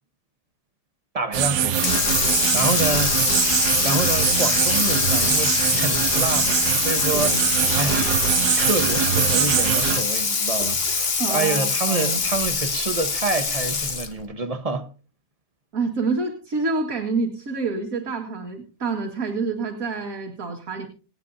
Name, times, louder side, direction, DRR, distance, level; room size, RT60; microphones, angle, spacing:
voice 1, 1.1-7.4 7.8-8.2 8.5-14.9, right 3 dB, 25° right, 1.0 m, -28 dB
sound 1, 1.3-10.0, right 9 dB, 80° right, 1.4 m, -23 dB
Water tap faucet / Sink (filling or washing), 1.7-14.2, left 4 dB, 40° left, 1.5 m, -23 dB
voice 2, 7.1-7.7 11.2-12.2 15.7-20.9, right 4 dB, 60° right, 2.3 m, -28 dB
27.5 x 9.3 x 2.7 m
omnidirectional pair, 1.7 m